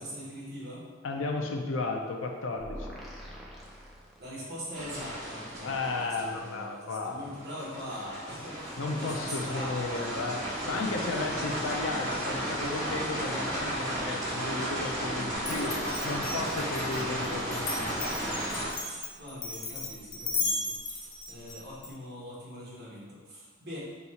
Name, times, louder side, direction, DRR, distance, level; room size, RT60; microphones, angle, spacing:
voice 1, 0.0-0.9 4.2-11.6 15.4-15.8 16.5-17.0 18.8-23.8, equal, 55° right, -6 dB, 1.2 m, -42 dB
voice 2, 1.0-2.9 5.6-7.3 8.8-10.4 10.7-15.7 16.0-18.0, left 3 dB, 85° left, 2 dB, 0.5 m, -34 dB
sound 1, 2.6-4.7, equal, ahead, 0.5 m, -44 dB
sound 2, 4.7-6.6 7.2-18.7, right 1 dB, 20° right, 1.2 m, -34 dB
Glass, 15.4-21.9, left 3 dB, 45° left, 0.8 m, -35 dB
4.2 x 2.4 x 4.2 m, 1.4 s
head